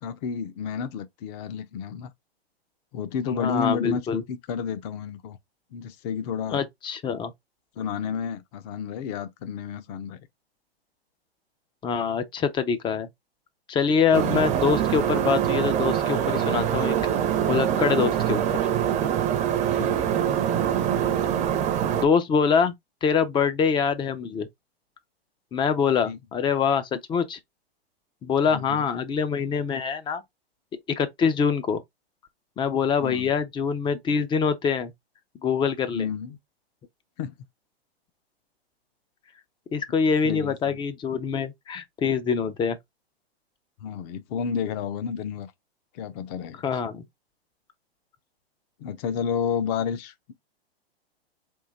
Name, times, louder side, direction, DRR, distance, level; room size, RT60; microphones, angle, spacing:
voice 1, 0.0-2.1 2.9-5.4 5.7-6.6 7.8-10.2 14.1-14.5 19.8-20.0 26.0-26.2 28.5-28.9 33.0-33.3 35.9-36.4 37.2-37.3 40.2-40.8 43.8-45.5 45.9-46.6 48.8-50.3, left 7 dB, 40° left, 0.8 m, -31 dB
voice 2, 3.3-4.2 6.5-7.3 11.8-13.1 13.7-17.0 17.4-18.4 21.9-22.7 23.0-24.5 25.5-27.4 28.2-30.2 31.0-31.8 32.6-34.9 35.4-36.1 39.7-42.8 46.6-47.0, left 6 dB, 15° left, 0.5 m, -24 dB
sound 1, 14.1-22.1, right 9 dB, 25° right, 0.7 m, -24 dB
3.8 x 2.8 x 4.0 m
hypercardioid pair, 125°, 31 cm